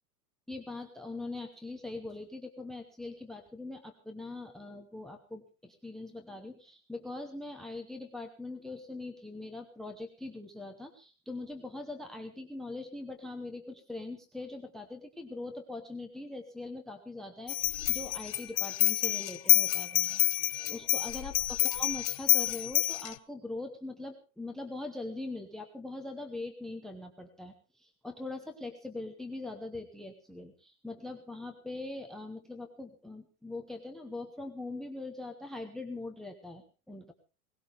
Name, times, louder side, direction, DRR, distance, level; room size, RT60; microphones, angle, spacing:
voice 1, 0.5-37.1, left 2 dB, ahead, 7 dB, 0.9 m, -42 dB
sound 1, 17.5-23.1, left 18 dB, 60° left, 1.0 m, -28 dB
18.5 x 17.0 x 3.4 m, 0.33 s
supercardioid pair, 145°, 46 cm